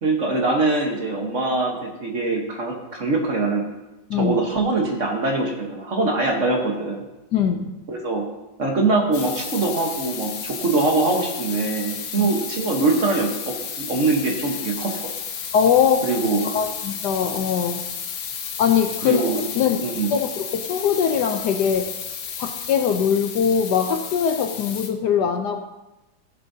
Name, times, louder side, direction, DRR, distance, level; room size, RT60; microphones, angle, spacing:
voice 1, 0.0-3.6 4.2-7.0 7.9-8.2 8.6-15.0 16.0-16.5 19.0-19.4 19.8-20.1, right 3 dB, 45° right, 1 dB, 1.3 m, -23 dB
voice 2, 7.3-7.7 12.2-12.3 15.5-16.1 16.4-17.9 18.6-19.8 20.1-21.9 22.4-25.6, left 7 dB, 70° left, 6 dB, 1.1 m, -21 dB
sound 1, 9.1-24.9, left 7 dB, 85° left, 1.7 m, -32 dB
15.5 x 7.4 x 2.7 m, 1.0 s
omnidirectional pair, 2.1 m